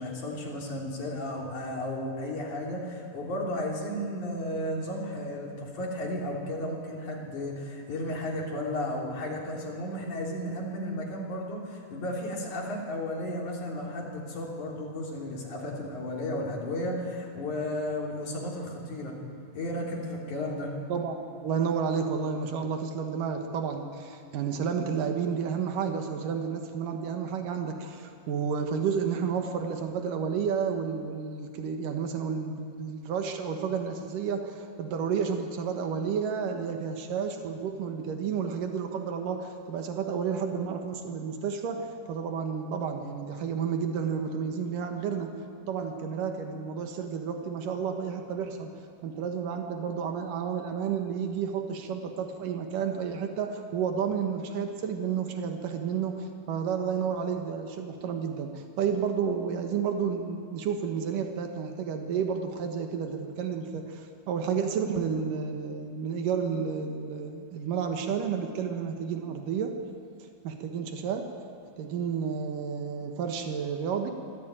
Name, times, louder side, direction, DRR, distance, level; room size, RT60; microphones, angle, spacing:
voice 1, 0.0-19.1 19.5-20.7, left 1 dB, 65° left, -1 dB, 4.8 m, -34 dB
voice 2, 20.9-48.7 49.0-69.7 70.2-71.3 71.8-74.1, right 6 dB, 85° right, 5 dB, 3.0 m, -31 dB
23.5 x 15.0 x 9.0 m, 2.5 s
omnidirectional pair, 3.7 m